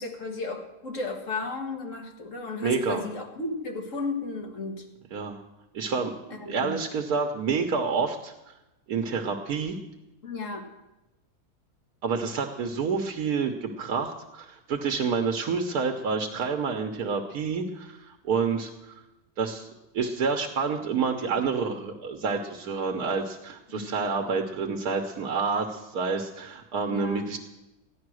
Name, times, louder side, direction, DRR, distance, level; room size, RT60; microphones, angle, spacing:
voice 1, 0.0-4.9 6.3-6.9 10.2-10.7 23.7-24.0 26.9-27.3, left 3 dB, 60° left, 3 dB, 1.9 m, -34 dB
voice 2, 2.6-3.0 5.1-5.4 5.7-8.5 8.9-9.8 12.0-19.0 19.4-19.7 19.9-27.4, right 5 dB, 85° right, 5 dB, 1.4 m, -28 dB
14.5 x 10.5 x 6.3 m, 0.99 s
omnidirectional pair, 1.6 m